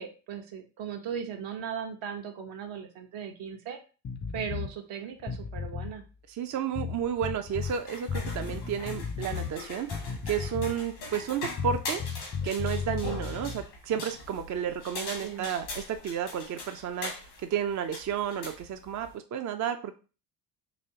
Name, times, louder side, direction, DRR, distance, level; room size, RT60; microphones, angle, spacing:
voice 1, 0.0-3.8 4.3-6.0 15.0-15.5, right 8 dB, 65° right, 4 dB, 0.9 m, -38 dB
sound 1, 4.0-4.7 5.2-6.0 6.8-7.8 8.1-9.5 9.9-10.9 11.6-13.6, left 6 dB, 25° left, 0.4 m, -34 dB
voice 2, 6.3-17.3 17.5-20.0, right 8 dB, 35° right, 7 dB, 0.5 m, -32 dB
sound 2, 7.5-19.1, left 2 dB, 85° left, 1.6 m, -41 dB
4.1 x 3.0 x 2.8 m, 0.35 s
hypercardioid pair, 55°, 49 cm